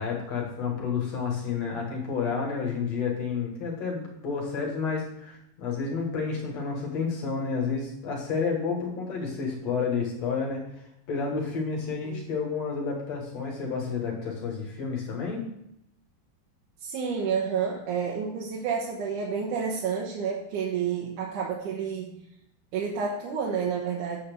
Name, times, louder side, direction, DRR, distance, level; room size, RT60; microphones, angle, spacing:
voice 1, 0.0-15.4, left 5 dB, 55° left, -1 dB, 2.3 m, -30 dB
voice 2, 16.8-22.1 22.7-24.2, right 6 dB, 70° right, -3 dB, 2.2 m, -30 dB
9.0 x 4.2 x 6.7 m, 0.79 s
omnidirectional pair, 4.2 m